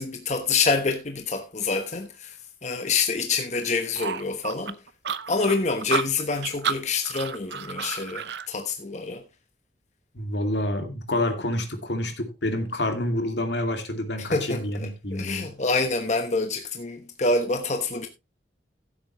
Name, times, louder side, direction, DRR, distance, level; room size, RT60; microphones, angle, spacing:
voice 1, 0.0-2.4 2.6-4.8 5.3-9.2 14.2-18.1, left 4 dB, 40° left, 1.1 m, -27 dB
sound 1, 4.0-8.5, right 6 dB, 75° right, 0.7 m, -31 dB
voice 2, 10.1-15.5, left 1 dB, 75° left, 2.5 m, -28 dB
15.5 x 8.2 x 3.1 m
head